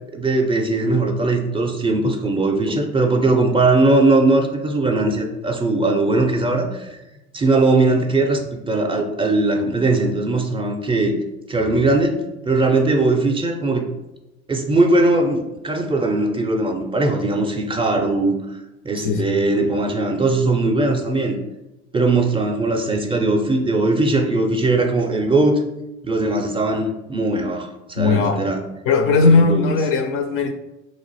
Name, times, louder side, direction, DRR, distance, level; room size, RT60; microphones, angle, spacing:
voice 1, 0.1-7.0 7.3-11.2 11.5-13.8 14.5-18.4 18.8-21.4 21.9-25.6 26.0-28.6 29.2-29.7, right 2 dB, 15° right, 3 dB, 0.5 m, -19 dB
voice 2, 28.0-28.5 28.9-30.5, left 4 dB, 40° left, 7 dB, 0.4 m, -17 dB
3.0 x 2.4 x 4.0 m, 0.96 s
hypercardioid pair, 70°, 34 cm